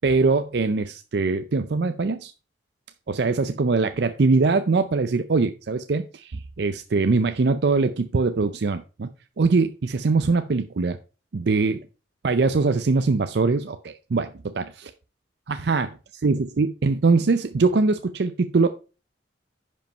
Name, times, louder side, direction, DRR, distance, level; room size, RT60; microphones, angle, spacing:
voice 1, 0.0-2.3 3.1-9.1 9.4-11.0 11.3-11.8 12.2-14.7 15.5-15.9 16.2-18.7, right 4 dB, 65° right, 9 dB, 0.5 m, -22 dB
10.5 x 5.3 x 4.4 m, 0.33 s
head